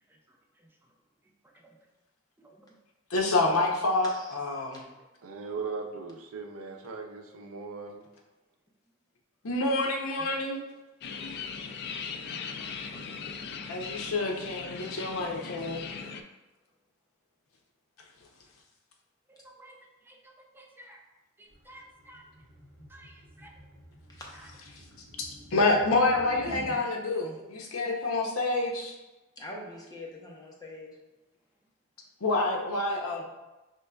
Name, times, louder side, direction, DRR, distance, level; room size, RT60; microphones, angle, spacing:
voice 1, 3.1-4.8 9.4-10.6 13.7-15.8 25.2-29.0 32.2-33.2, left 2 dB, 85° left, 1 dB, 0.7 m, -27 dB
voice 2, 4.0-4.3 10.2-10.3 11.3-11.4 24.1-24.3 29.4-30.9, left 1 dB, 20° left, -2 dB, 0.8 m, -44 dB
voice 3, 5.2-8.0, right 4 dB, 80° right, 4 dB, 0.5 m, -38 dB
sound 1, 11.0-16.2, left 5 dB, 55° left, 0.3 m, -39 dB
voice 4, 12.2-13.0 19.3-19.8 20.1-20.2 20.5-21.0 21.4-22.2 22.9-23.1 23.4-23.5, right 1 dB, 10° right, 0 dB, 0.4 m, -53 dB
sound 2, 21.5-26.8, right 1 dB, 50° right, 1.1 m, -48 dB
5.2 x 3.2 x 2.3 m, 1.1 s
head